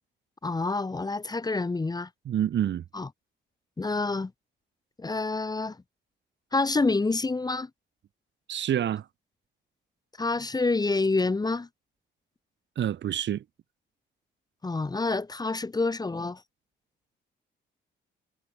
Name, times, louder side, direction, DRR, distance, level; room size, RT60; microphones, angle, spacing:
voice 1, 0.4-2.1 2.9-3.1 3.8-4.3 5.0-5.8 6.5-7.7 10.2-11.7 14.6-16.4, left 3 dB, 20° left, 1.1 m, -27 dB
voice 2, 2.2-2.8 8.5-9.1 12.8-13.4, right 10 dB, 65° right, 2.8 m, -27 dB
cardioid pair, 90°, 20 cm